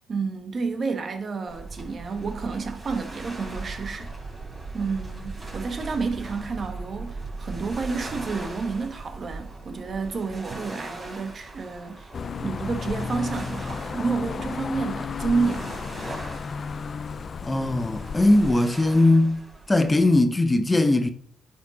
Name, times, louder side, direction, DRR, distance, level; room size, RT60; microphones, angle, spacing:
voice 1, 0.1-4.1 4.7-12.1 12.4-15.7, right 4 dB, 45° right, 1.3 m, -30 dB
sound 1, 1.5-20.2, right 3 dB, 25° right, 3.6 m, -39 dB
sound 2, 12.1-18.5, left 5 dB, 45° left, 0.4 m, -33 dB
voice 2, 17.5-19.4 19.7-21.1, left 2 dB, 15° left, 0.8 m, -20 dB
10.5 x 4.8 x 4.1 m
cardioid pair, 90°, 0 cm